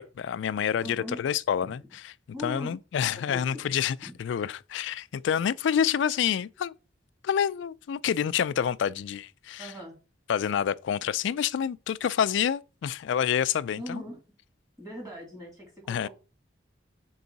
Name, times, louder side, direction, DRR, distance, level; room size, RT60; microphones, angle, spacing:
voice 1, 0.0-2.1 2.4-6.7 7.2-9.7 10.3-14.0 15.9-16.1, left 8 dB, 70° left, 0.3 m, -28 dB
voice 2, 0.8-1.2 1.6-1.7 2.3-2.8 3.2-3.6 4.0-4.1 9.6-10.0 13.8-14.2 14.8-16.1, left 1 dB, 15° right, 2.5 m, -40 dB
5.9 x 4.7 x 4.0 m
head